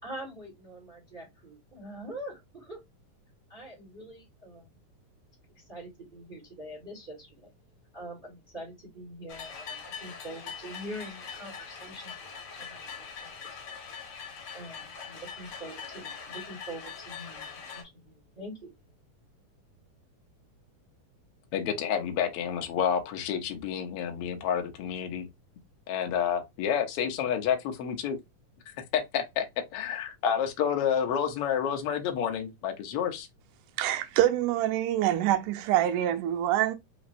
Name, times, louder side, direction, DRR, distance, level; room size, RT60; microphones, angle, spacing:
voice 1, 0.0-2.8 3.5-4.7 5.5-7.5 7.9-13.8 14.5-18.7, right 1 dB, 25° right, 1.1 m, -44 dB
sound 1, 9.3-17.8, left 6 dB, 55° left, 1.6 m, -42 dB
voice 2, 21.5-25.2 25.9-28.2 28.9-29.5 29.7-33.3, left 8 dB, 85° left, 1.2 m, -29 dB
voice 3, 33.8-36.7, right 12 dB, 80° right, 2.0 m, -25 dB
5.0 x 3.1 x 2.6 m
omnidirectional pair, 3.8 m